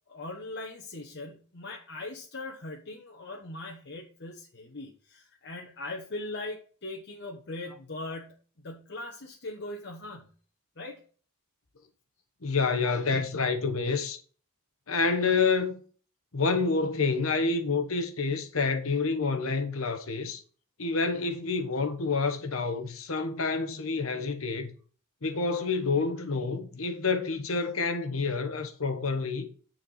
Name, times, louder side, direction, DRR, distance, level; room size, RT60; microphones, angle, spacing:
voice 1, 0.1-8.3 8.6-10.3 10.8-11.0, left 2 dB, 55° left, 1.2 m, -40 dB
voice 2, 12.4-14.2 14.9-15.8 16.3-20.4 20.8-24.7 25.2-29.5, left 4 dB, 75° left, 1.1 m, -28 dB
9.9 x 4.4 x 5.7 m
head